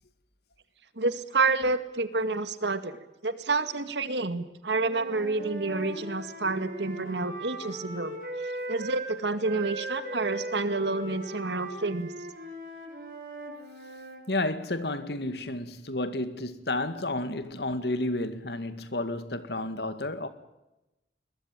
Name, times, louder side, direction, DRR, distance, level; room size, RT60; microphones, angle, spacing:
voice 1, 1.0-8.2 8.7-12.1, right 3 dB, 80° right, 2.1 m, -29 dB
Wind instrument woodwind instrument, 4.7-9.1 9.4-14.2, right 1 dB, 50° right, 6.8 m, -39 dB
voice 2, 14.3-20.3, left 2 dB, 70° left, 2.2 m, -31 dB
22.0 x 21.0 x 9.2 m
head